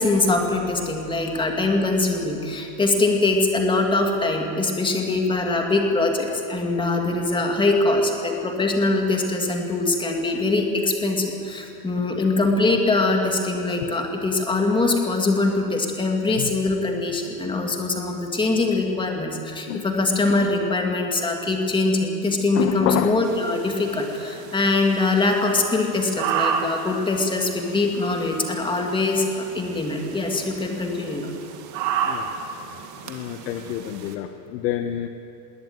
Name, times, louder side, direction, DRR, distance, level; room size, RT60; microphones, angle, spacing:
voice 1, 0.0-31.3, left 2 dB, 10° left, 2 dB, 2.4 m, -23 dB
voice 2, 22.5-23.1 32.0-32.3 32.5-32.8 33.0-35.1, left 11 dB, 75° left, 7 dB, 1.4 m, -27 dB
Deer barking, 23.2-34.1, right 7 dB, 35° right, 2.1 m, -32 dB
20.5 x 18.0 x 9.5 m, 2.7 s
supercardioid pair, 160°, 50 cm